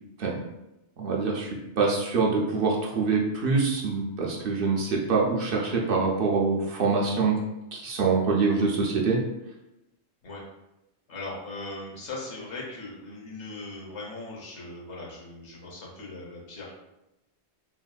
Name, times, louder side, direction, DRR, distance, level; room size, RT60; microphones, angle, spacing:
voice 1, 1.0-1.5 1.8-7.4 7.7-9.2, right 4 dB, 60° right, -2 dB, 0.7 m, -25 dB
voice 2, 11.1-16.8, left 2 dB, 80° left, -3 dB, 1.2 m, -39 dB
3.5 x 2.4 x 2.2 m, 0.92 s
omnidirectional pair, 1.2 m